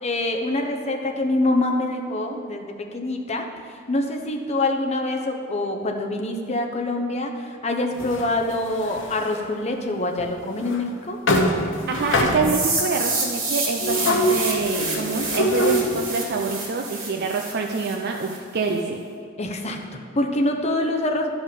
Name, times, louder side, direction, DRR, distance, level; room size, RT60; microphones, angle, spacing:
voice 1, 0.0-11.2 19.4-21.3, left 2 dB, 35° left, 3 dB, 0.9 m, -25 dB
sound 1, 8.0-9.4 10.2-10.3 10.7-10.8 11.3-12.8 13.8-16.1, equal, 65° left, 1.0 m, -24 dB
voice 2, 11.9-19.0, right 4 dB, 55° right, 2 dB, 0.5 m, -26 dB
sound 2, 12.4-18.4, right 3 dB, 85° right, 2.5 m, -28 dB
12.5 x 5.3 x 5.2 m, 2.2 s
head